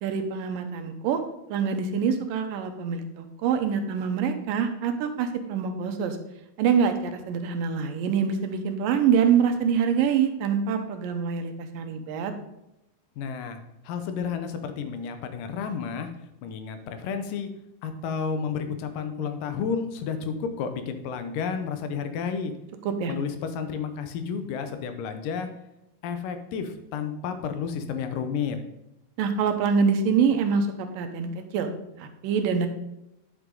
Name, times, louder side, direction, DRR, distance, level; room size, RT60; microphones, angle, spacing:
voice 1, 0.0-1.2 1.5-6.2 6.6-12.3 22.9-23.1 29.2-31.7 32.0-32.7, right 6 dB, 85° right, 6 dB, 2.5 m, -25 dB
voice 2, 13.2-13.6 13.9-16.1 16.4-17.5 17.8-22.5 23.1-25.5 26.0-28.6, left 6 dB, 80° left, 8 dB, 2.5 m, -31 dB
9.7 x 6.6 x 3.9 m, 0.88 s
omnidirectional pair, 3.9 m